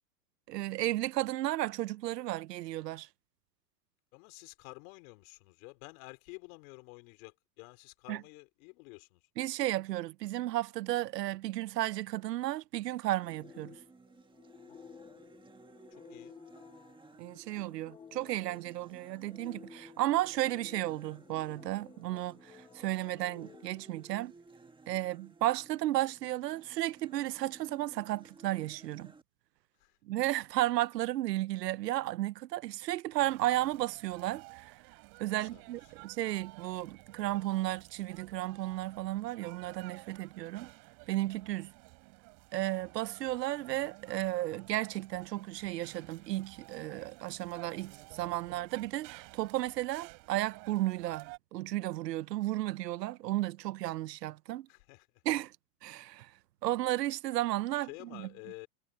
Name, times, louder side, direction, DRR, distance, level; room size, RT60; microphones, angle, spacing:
voice 1, 0.5-3.1 8.1-8.2 9.4-13.8 17.2-24.3 24.9-29.1 30.0-34.8 35.2-40.7 41.1-41.7 42.5-54.7 55.2-55.5 55.8-56.3 56.6-58.3, right 15 dB, 85° right, 0.9 m, -34 dB
voice 2, 4.1-9.2 14.7-15.1 15.9-16.3 29.8-30.0 35.3-35.9 54.7-55.1 57.7-58.7, left 30 dB, 60° left, 4.1 m, -51 dB
sound 1, 13.2-29.2, right 4 dB, 10° right, 1.7 m, -57 dB
sound 2, 13.3-24.7, left 7 dB, 10° left, 0.3 m, -55 dB
sound 3, 33.2-51.4, right 40 dB or more, 55° right, 6.9 m, -53 dB
hypercardioid pair, 120°, 48 cm